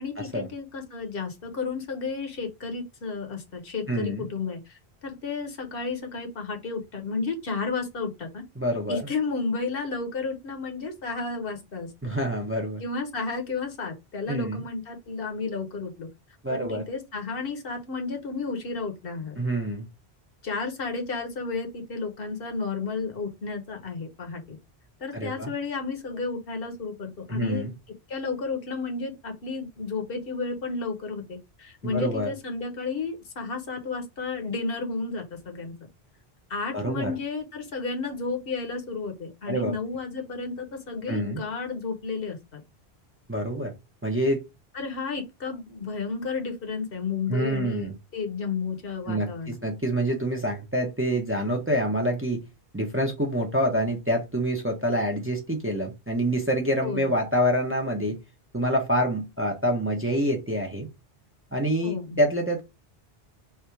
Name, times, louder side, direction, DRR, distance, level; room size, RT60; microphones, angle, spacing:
voice 1, 0.0-8.4 8.9-12.1 12.8-16.1 16.5-19.4 20.4-24.6 25.0-27.6 28.1-35.7 36.5-42.6 44.7-49.6 56.8-57.1 61.8-62.2, left 4 dB, 65° left, 1.1 m, -32 dB
voice 2, 3.9-4.3 8.6-9.0 12.0-12.8 14.3-14.6 16.4-16.8 19.4-19.9 25.1-25.5 27.3-27.7 31.8-32.3 36.7-37.1 39.5-39.7 41.1-41.4 43.3-43.7 44.0-44.4 47.3-47.9 49.1-52.4 52.7-58.2 58.5-60.9 61.5-62.6, equal, 15° right, 0.7 m, -26 dB
3.4 x 2.6 x 4.5 m
omnidirectional pair, 1.1 m